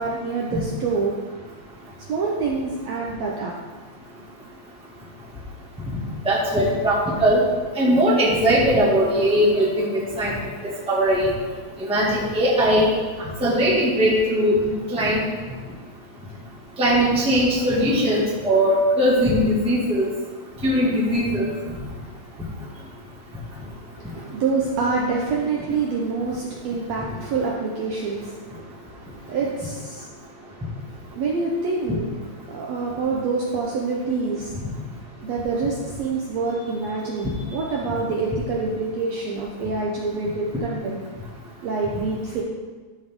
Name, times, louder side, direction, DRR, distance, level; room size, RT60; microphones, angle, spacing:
voice 1, 0.0-1.3 2.0-3.5 24.0-32.1 32.5-34.7 35.2-41.0 41.6-42.4, right 4 dB, 70° right, -3 dB, 1.7 m, -27 dB
voice 2, 6.2-7.4 7.7-10.3 10.6-11.3 11.8-12.9 13.4-15.2 16.8-20.1 20.6-21.6 34.6-34.7, equal, 5° right, -6 dB, 1.3 m, -20 dB
13.5 x 5.3 x 3.7 m, 1.4 s
omnidirectional pair, 3.8 m